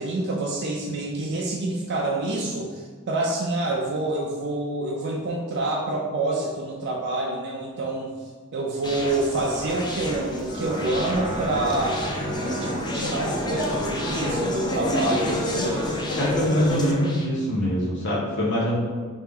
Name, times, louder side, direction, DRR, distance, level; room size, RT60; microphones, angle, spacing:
voice 1, 0.0-8.1 8.5-12.0 12.4-16.0, right 2 dB, 50° right, -2 dB, 0.4 m, -27 dB
Conversation, 8.8-17.3, left 1 dB, 20° left, 0.4 m, -30 dB
sound 1, 10.5-15.9, equal, 80° left, 1.3 m, -32 dB
voice 2, 16.2-18.8, equal, 55° left, -6 dB, 1.1 m, -23 dB
3.6 x 2.9 x 3.7 m, 1.5 s
head